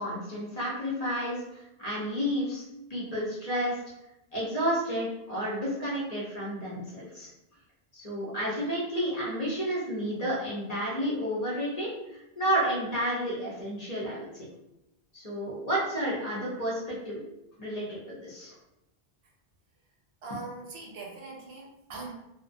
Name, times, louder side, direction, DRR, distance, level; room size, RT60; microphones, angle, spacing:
voice 1, 0.0-2.6 2.9-3.8 4.3-7.3 7.9-14.5 15.1-17.2 17.6-18.5, equal, 45° left, -6 dB, 0.7 m, -31 dB
voice 2, 20.2-22.1, right 3 dB, 75° right, -1 dB, 0.8 m, -41 dB
2.3 x 2.1 x 2.5 m, 0.89 s
omnidirectional pair, 1.1 m